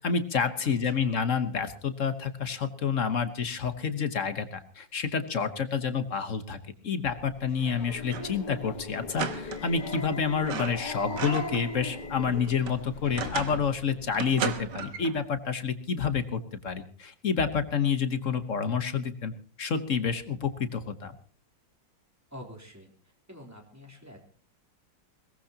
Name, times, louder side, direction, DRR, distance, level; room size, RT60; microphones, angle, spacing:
voice 1, 0.0-6.6 6.8-19.3 19.6-21.1, left 6 dB, 45° left, 11 dB, 1.3 m, -29 dB
voice 2, 0.6-1.2 22.3-24.2, equal, 10° right, 1 dB, 3.4 m, -47 dB
Subway metro underground, 7.1-14.7, left 5 dB, 90° left, 1.8 m, -47 dB
Growling, 7.6-13.0, left 1 dB, 25° left, 1.5 m, -39 dB
sound 1, 8.0-8.4 8.7-8.8 9.1-10.1 10.4-11.7 12.0-13.7 14.1-15.2, right 7 dB, 70° right, 1.8 m, -35 dB
21.5 x 18.5 x 2.9 m, 0.43 s
omnidirectional pair, 2.0 m